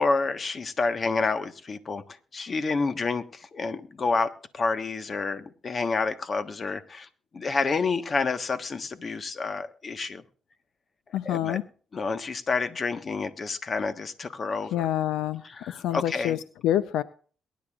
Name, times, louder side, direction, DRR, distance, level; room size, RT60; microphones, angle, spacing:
voice 1, 0.0-2.0 2.3-10.2 11.2-11.6 11.9-14.9 15.4-16.4, left 4 dB, 45° left, 10 dB, 1.3 m, -29 dB
voice 2, 11.1-11.6 14.7-15.4 15.8-16.4 16.6-17.0, left 11 dB, 85° left, 14 dB, 0.5 m, -26 dB
22.5 x 10.5 x 2.4 m, 0.41 s
cardioid pair, 75°, 0 cm